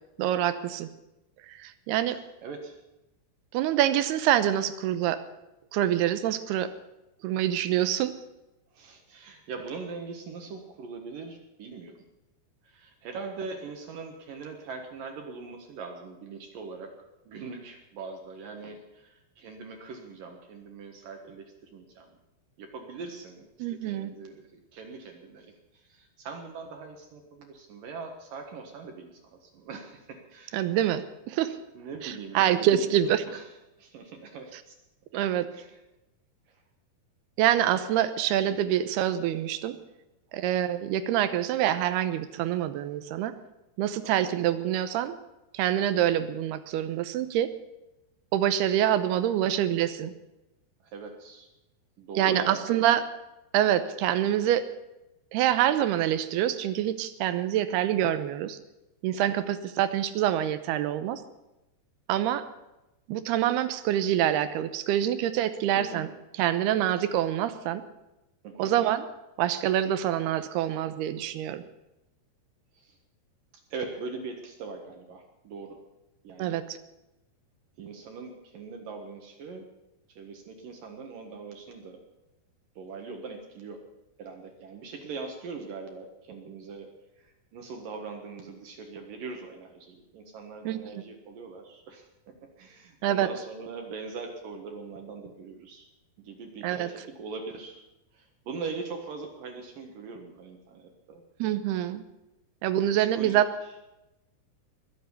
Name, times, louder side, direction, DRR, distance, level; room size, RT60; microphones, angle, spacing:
voice 1, 0.2-0.9 1.5-2.2 3.5-5.2 5.7-6.7 7.2-8.1 23.6-24.1 30.5-31.5 32.0-33.2 35.1-35.5 37.4-39.8 40.3-43.3 43.8-45.2 45.5-47.5 48.3-50.1 52.2-53.0 53.5-54.6 55.3-58.6 59.0-61.2 62.1-62.4 63.1-66.1 66.4-67.8 68.6-69.0 69.4-71.6 76.4-76.6 90.7-90.8 93.0-93.3 96.6-96.9 101.4-102.0 102.6-103.5, right 11 dB, 80° right, 12 dB, 2.9 m, -26 dB
voice 2, 2.1-2.8 8.7-12.0 12.6-16.9 17.3-22.2 22.6-30.8 31.7-33.4 33.8-34.8 35.5-35.8 36.5-36.6 44.0-44.4 49.4-49.6 50.8-51.5 52.0-53.0 65.8-66.1 68.4-68.7 72.7-73.0 73.5-75.8 76.2-76.6 77.8-79.7 80.1-82.0 82.8-83.8 84.2-86.9 87.2-95.9 96.2-97.8 98.1-101.2 103.0-103.4, right 4 dB, 60° right, 4 dB, 3.0 m, -41 dB
21.0 x 8.0 x 8.3 m, 0.95 s
omnidirectional pair, 4.7 m